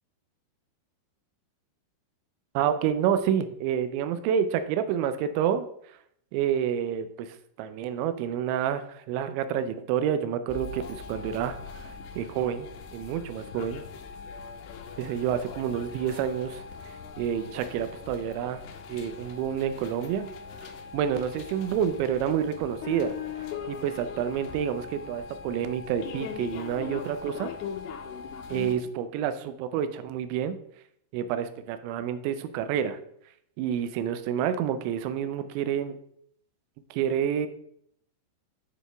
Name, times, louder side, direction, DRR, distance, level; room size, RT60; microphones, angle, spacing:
voice 1, 2.6-5.7 6.3-13.8 15.0-18.6 18.9-20.3 20.6-23.2 23.7-27.5 28.5-30.6 31.1-33.0 33.6-36.0 36.9-37.5, right 9 dB, 85° right, 10 dB, 2.9 m, -29 dB
sound 1, 10.5-28.8, left 6 dB, 80° left, 2.8 m, -40 dB
9.1 x 4.2 x 3.3 m, 0.68 s
omnidirectional pair, 5.2 m